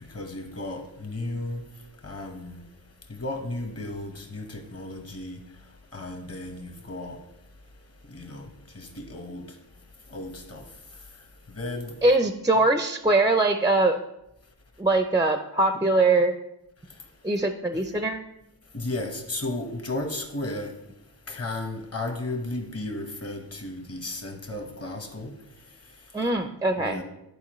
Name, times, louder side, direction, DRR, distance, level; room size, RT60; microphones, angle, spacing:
voice 1, 0.1-1.6 2.0-2.5 3.1-5.4 5.9-7.2 8.1-8.4 8.7-9.4 10.1-10.6 11.6-11.9 18.7-20.7 21.3-25.3 26.8-27.0, left 2 dB, 35° left, 1.2 m, -34 dB
voice 2, 12.0-14.0 14.8-16.3 17.2-18.2 26.1-27.0, right 2 dB, 10° right, 0.4 m, -22 dB
11.0 x 4.4 x 3.1 m
wide cardioid pair, 95°, 40 cm